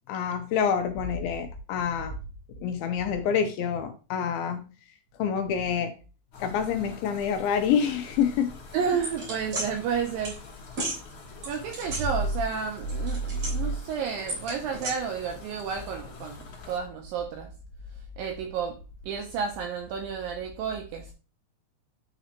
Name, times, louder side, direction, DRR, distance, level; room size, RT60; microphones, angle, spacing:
voice 1, 0.1-2.1 2.6-4.6 5.2-5.9 6.4-8.5, left 7 dB, 85° left, 2.2 m, -27 dB
sound 1, 6.3-16.8, left 4 dB, 60° left, 1.3 m, -46 dB
voice 2, 8.7-10.4 11.5-17.5 18.2-18.8 19.0-21.1, right 6 dB, 80° right, 2.0 m, -31 dB
sound 2, 9.0-9.7 10.2-10.4 10.7-11.0 11.4-12.5 12.8-13.8 14.3-14.9, right 2 dB, 40° right, 4.3 m, -30 dB
9.0 x 4.1 x 2.9 m
omnidirectional pair, 4.7 m